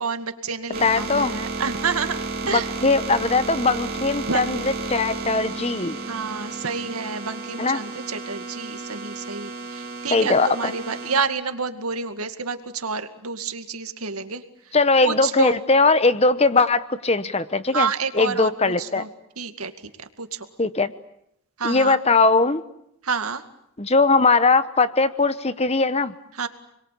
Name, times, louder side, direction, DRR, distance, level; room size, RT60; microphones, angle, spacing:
voice 1, 0.0-2.7 4.3-4.6 6.1-14.7 15.0-15.5 17.7-19.1 19.4-19.7 20.0-20.5 21.6-22.0 23.0-23.4 26.3-26.5, right 5 dB, 90° right, 8 dB, 2.2 m, -29 dB
sound 1, 0.7-11.2, right 3 dB, 45° right, 3.9 m, -32 dB
voice 2, 0.8-1.3 2.5-6.0 7.6-7.8 10.1-10.7 14.7-17.9 18.1-19.0 20.6-20.9 21.6-22.6 23.8-26.1, left 3 dB, 30° left, 13 dB, 1.0 m, -20 dB
30.0 x 22.0 x 8.6 m, 0.78 s
head